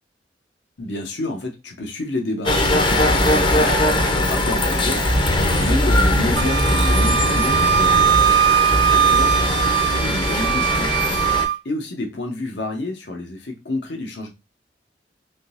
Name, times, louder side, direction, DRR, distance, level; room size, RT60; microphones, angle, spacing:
voice 1, 0.8-3.8 4.1-8.4 8.8-14.3, left 2 dB, 75° left, 0.9 m, -29 dB
sound 1, 2.4-11.4, left 1 dB, 30° left, 0.6 m, -20 dB
Wind instrument woodwind instrument, 6.4-11.6, right 9 dB, 70° right, 0.4 m, -20 dB
3.6 x 2.8 x 2.5 m
head